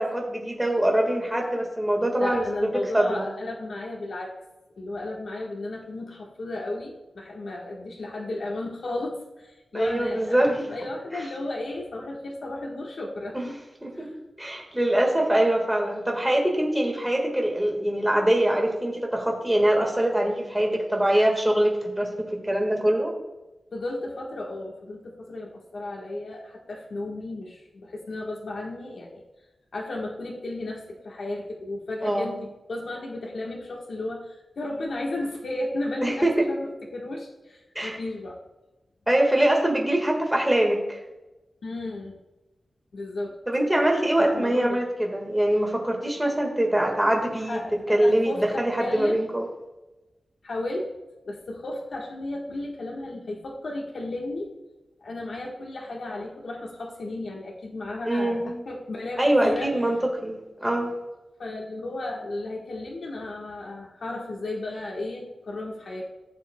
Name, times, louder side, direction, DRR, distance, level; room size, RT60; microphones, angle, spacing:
voice 1, 0.0-3.3 9.7-10.5 13.8-14.1 14.4-23.1 32.0-32.3 36.0-36.3 37.7-38.0 39.1-41.0 43.5-47.6 47.9-49.4 58.0-58.6 59.2-60.0 60.2-60.9, right 1 dB, 10° right, 1 dB, 1.6 m, -23 dB
voice 2, 2.1-4.3 4.8-13.6 13.9-14.1 23.7-29.2 29.7-38.4 41.6-42.2 42.9-43.4 44.2-44.8 47.3-49.2 50.4-50.9 51.2-54.5 55.0-59.7 61.4-66.1, left 2 dB, 70° left, -2 dB, 1.3 m, -34 dB
15.5 x 7.3 x 2.2 m, 1.1 s
wide cardioid pair, 140°, 0 cm